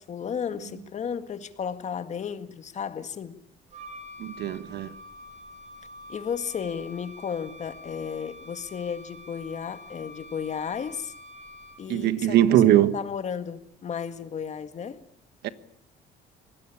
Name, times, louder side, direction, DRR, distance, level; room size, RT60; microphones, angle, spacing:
voice 1, 0.0-3.4 6.1-11.1 11.8-15.0, left 7 dB, 45° left, 1.9 m, -34 dB
Wind instrument woodwind instrument, 3.7-12.0, left 1 dB, 45° right, 6.0 m, -46 dB
voice 2, 4.2-4.9 11.9-12.9 15.4-15.5, right 12 dB, 75° right, 1.4 m, -21 dB
24.0 x 19.5 x 8.6 m
cardioid pair, 110°, 17 cm